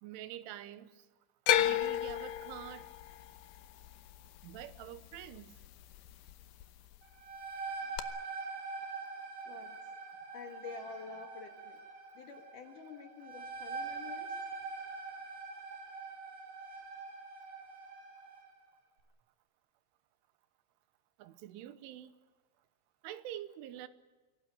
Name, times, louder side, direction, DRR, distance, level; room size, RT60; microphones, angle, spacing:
voice 1, 0.0-1.0 1.6-2.9 4.4-5.5 21.2-22.1 23.0-23.9, right 12 dB, 85° right, 3.5 m, -46 dB
sound 1, 1.5-5.7 5.9-6.6 8.0-8.1, left 12 dB, 85° left, 2.1 m, -33 dB
sound 2, 7.0-18.5, right 4 dB, 65° right, 7.2 m, -44 dB
voice 2, 9.4-10.0 10.3-11.8 12.1-14.4, left 5 dB, 60° left, 2.5 m, -48 dB
25.0 x 17.5 x 9.1 m
omnidirectional pair, 5.5 m